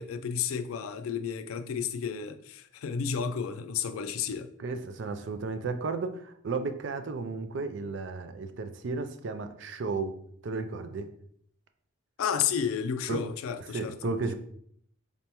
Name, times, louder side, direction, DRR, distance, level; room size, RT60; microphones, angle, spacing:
voice 1, 0.0-4.5 12.2-14.1, left 7 dB, 85° left, 0.4 m, -32 dB
voice 2, 4.6-10.1 10.4-11.1 13.1-13.2 13.7-14.3, right 3 dB, 60° right, 0.4 m, -33 dB
4.0 x 3.3 x 2.9 m
head